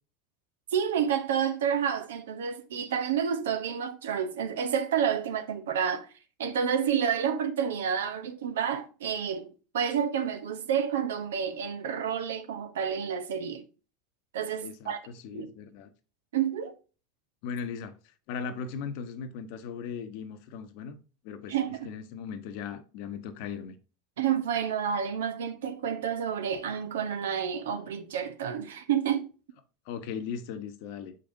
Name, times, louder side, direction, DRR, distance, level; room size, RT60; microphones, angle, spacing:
voice 1, 0.7-6.1 6.4-13.6 14.3-15.0 15.3-15.5 16.3-16.7 21.5-21.9 24.2-29.3, right 8 dB, 70° right, 0.9 m, -29 dB
voice 2, 14.6-15.9 17.4-17.9 18.3-21.0 21.2-21.5 21.8-23.7 29.9-31.2, left 6 dB, 60° left, 0.9 m, -38 dB
6.7 x 5.3 x 2.7 m
figure-of-eight pair, 80°, 0 cm